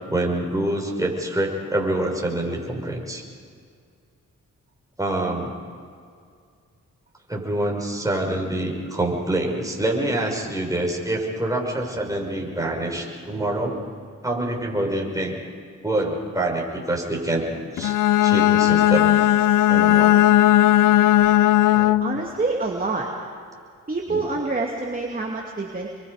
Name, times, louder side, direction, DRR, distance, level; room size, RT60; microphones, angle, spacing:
voice 1, 0.1-3.2 5.0-5.5 7.3-13.8 14.2-15.3 15.8-17.5 17.7-17.9 18.2-19.1 19.7-20.2 21.7-21.9 24.1-24.2, right 1 dB, 10° right, 0 dB, 6.0 m, -26 dB
Bowed string instrument, 17.8-22.2, left 13 dB, 80° left, 0.6 m, -17 dB
voice 2, 22.0-23.1 23.9-25.9, right 3 dB, 25° right, -1 dB, 2.7 m, -26 dB
28.5 x 23.5 x 5.1 m, 2.2 s
cardioid pair, 70°, 32 cm